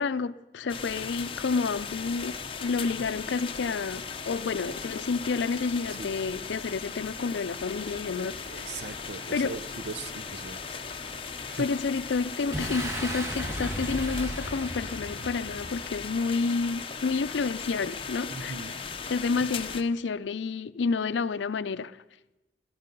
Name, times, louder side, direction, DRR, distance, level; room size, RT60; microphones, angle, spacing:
voice 1, 0.0-8.9 9.3-9.6 11.6-18.8 19.1-22.0, left 4 dB, 85° left, 0.5 m, -30 dB
sound 1, 0.7-19.8, left 5 dB, 30° left, 0.7 m, -38 dB
sound 2, 7.3-13.1, equal, 40° right, 4.6 m, -52 dB
voice 2, 8.5-10.6 11.5-11.7 15.2-15.3 18.3-18.7, right 4 dB, 65° right, 0.7 m, -39 dB
Boom, 12.5-16.1, equal, 15° right, 1.6 m, -35 dB
16.0 x 14.5 x 5.3 m
head